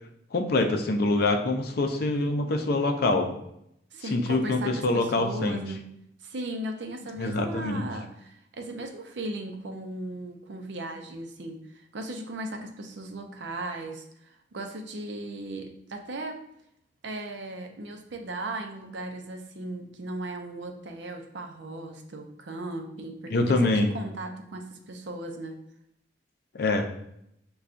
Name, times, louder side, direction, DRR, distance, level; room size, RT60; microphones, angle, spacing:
voice 1, 0.3-3.3 4.1-5.6 7.2-7.9 23.3-23.9 26.6-26.9, left 2 dB, 60° left, 4 dB, 0.5 m, -25 dB
voice 2, 3.9-16.5 17.0-25.6, right 2 dB, 75° right, 4 dB, 0.6 m, -37 dB
6.6 x 2.3 x 2.5 m, 0.77 s
head